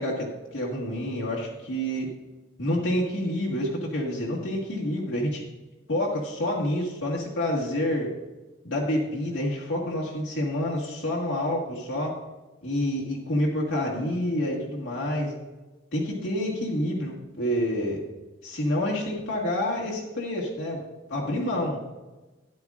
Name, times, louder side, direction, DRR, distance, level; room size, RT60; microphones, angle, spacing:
voice 1, 0.0-2.1 2.6-5.4 5.9-8.1 8.6-12.1 12.6-15.3 15.9-18.0 18.4-20.8 21.1-21.8, left 1 dB, 80° left, -4 dB, 1.8 m, -28 dB
12.5 x 10.0 x 2.5 m, 1.1 s
head